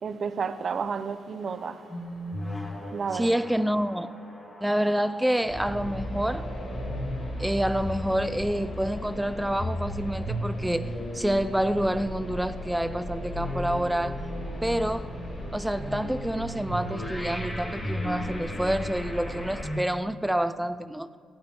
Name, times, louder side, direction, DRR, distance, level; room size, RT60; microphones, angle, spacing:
voice 1, 0.0-1.9 2.9-3.4, right 6 dB, 50° right, 0.6 m, -31 dB
sound 1, 1.4-19.8, equal, 15° left, 1.9 m, -37 dB
voice 2, 3.1-4.1 4.6-6.5 7.4-14.3 14.6-15.1 15.5-21.1, equal, 5° right, 0.4 m, -28 dB
sound 2, 5.5-19.6, equal, 50° left, 2.6 m, -37 dB
16.5 x 8.7 x 4.4 m
cardioid pair, 90°, 0 cm